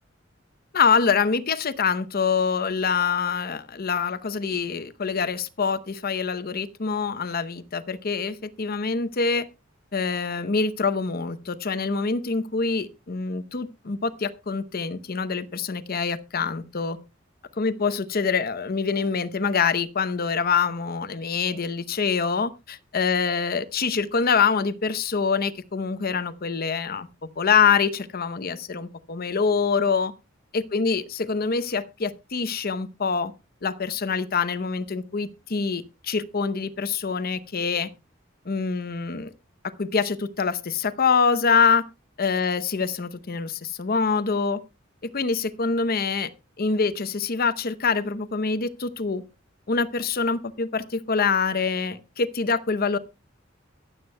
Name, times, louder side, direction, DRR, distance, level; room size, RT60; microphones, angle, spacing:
voice 1, 0.7-9.5 9.9-17.0 17.6-27.1 27.4-30.1 30.5-33.3 33.6-37.9 38.5-39.3 39.8-41.8 42.2-44.6 45.1-46.3 46.6-49.2 49.7-53.0, left 5 dB, 50° left, 0.7 m, -25 dB
23.0 x 7.8 x 2.2 m
head